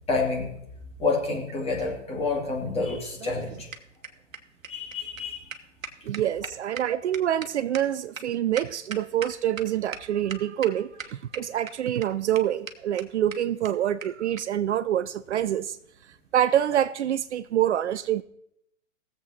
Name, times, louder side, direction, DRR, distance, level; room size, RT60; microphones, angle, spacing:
voice 1, 0.1-0.5 1.0-3.7 4.7-5.5, left 3 dB, 15° left, 0 dB, 2.6 m, -28 dB
sound 1, 2.9-9.6 9.9-10.0 10.3-10.7 11.0-11.7 12.0-12.1 12.4-12.5 12.7-12.8 13.0-13.1 13.3-13.4 13.6-13.7 14.0-14.1 14.4-14.5 15.3-15.5, right 5 dB, 80° right, 1.2 m, -38 dB
voice 2, 6.0-15.8 16.3-18.2, right 11 dB, 60° right, 13 dB, 0.5 m, -26 dB
18.5 x 7.5 x 4.2 m, 0.75 s
figure-of-eight pair, 115°, 39 cm